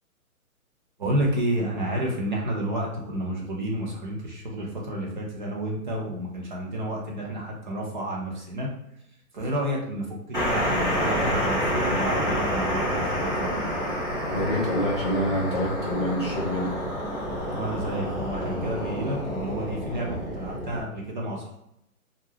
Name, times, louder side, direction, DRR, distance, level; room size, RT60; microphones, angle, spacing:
voice 1, 1.0-8.7 9.3-13.5 17.5-21.6, right 1 dB, 35° right, -2 dB, 0.5 m, -30 dB
sound 1, 10.3-20.8, equal, 10° right, 0.8 m, -28 dB
voice 2, 14.3-16.7, equal, 20° left, -6 dB, 0.5 m, -26 dB
2.4 x 2.1 x 3.2 m, 0.79 s
hypercardioid pair, 145°, 43 cm